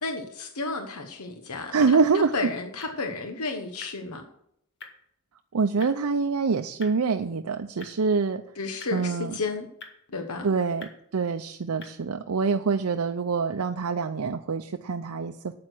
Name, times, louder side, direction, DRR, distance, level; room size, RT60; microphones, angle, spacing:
voice 1, 0.0-4.2 8.6-9.7 10.1-10.5, left 3 dB, 85° left, 5 dB, 1.1 m, -32 dB
sound 1, 0.9-12.2, left 4 dB, 55° left, 2.0 m, -52 dB
voice 2, 1.7-2.3 5.5-8.4 8.9-9.4 10.4-15.5, right 4 dB, 80° right, 6 dB, 0.6 m, -25 dB
9.2 x 8.6 x 6.1 m, 0.73 s
head